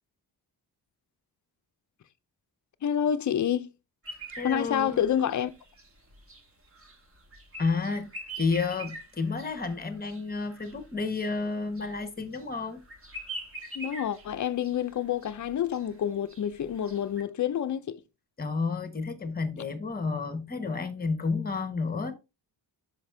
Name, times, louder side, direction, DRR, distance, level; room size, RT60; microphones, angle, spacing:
voice 1, 2.8-3.7 4.4-5.5 13.7-18.0, left 9 dB, 45° left, 0.5 m, -28 dB
sound 1, 4.0-17.2, right 2 dB, 30° right, 1.4 m, -45 dB
voice 2, 4.4-5.0 7.6-8.1 8.4-12.8 18.4-22.1, left 4 dB, 20° left, 0.9 m, -31 dB
5.8 x 5.7 x 3.3 m
wide cardioid pair, 155°, 43 cm